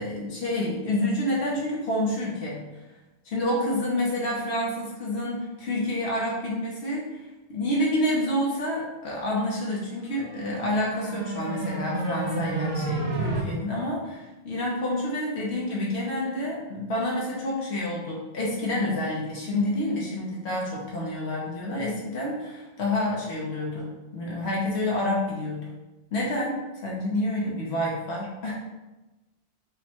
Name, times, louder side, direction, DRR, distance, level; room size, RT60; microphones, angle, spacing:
voice 1, 0.0-2.6 3.2-7.2 7.5-25.6 26.1-28.6, left 1 dB, 80° left, -4 dB, 1.1 m, -28 dB
sound 1, 10.1-13.4, right 2 dB, 50° right, 0.8 m, -30 dB
5.2 x 2.2 x 2.9 m, 1.1 s
omnidirectional pair, 1.1 m